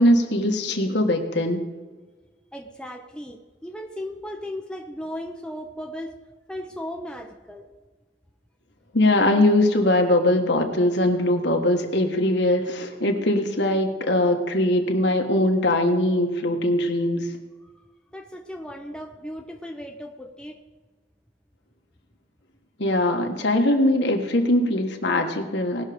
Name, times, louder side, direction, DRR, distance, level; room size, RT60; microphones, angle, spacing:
voice 1, 0.0-1.6 8.9-17.3 22.8-25.8, left 1 dB, 65° left, 3 dB, 1.5 m, -21 dB
voice 2, 2.5-6.2 6.5-7.7 17.6-17.7 18.1-20.6, equal, 5° left, 2 dB, 0.7 m, -36 dB
18.5 x 6.4 x 5.1 m, 1.3 s
head